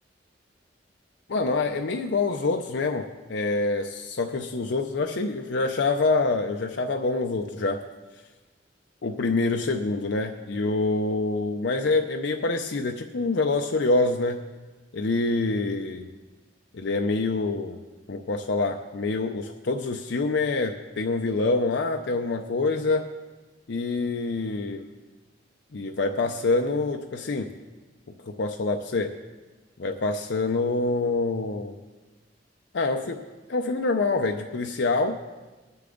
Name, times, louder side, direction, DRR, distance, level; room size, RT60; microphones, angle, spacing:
voice 1, 1.3-7.8 9.0-14.4 14.9-16.1 16.7-17.8 18.1-23.1 23.7-24.8 25.7-27.5 28.2-29.2 29.8-31.8 32.7-33.2 33.5-35.2, left 3 dB, 65° left, 4 dB, 0.6 m, -26 dB
19.0 x 6.8 x 3.8 m, 1.2 s
head